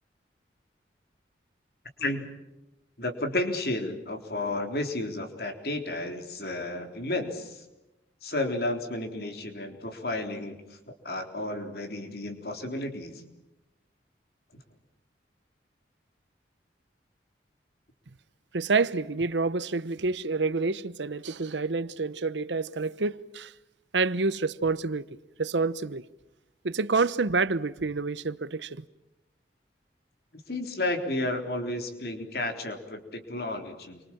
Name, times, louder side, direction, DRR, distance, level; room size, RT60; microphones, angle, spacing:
voice 1, 2.0-2.3 3.0-7.6 8.2-10.8 11.0-13.1 30.5-34.0, left 2 dB, 60° left, 3.9 m, -32 dB
voice 2, 18.5-23.5 23.9-25.0 25.4-26.0 26.6-28.8, right 4 dB, 85° right, 1.0 m, -28 dB
29.0 x 24.5 x 7.5 m
head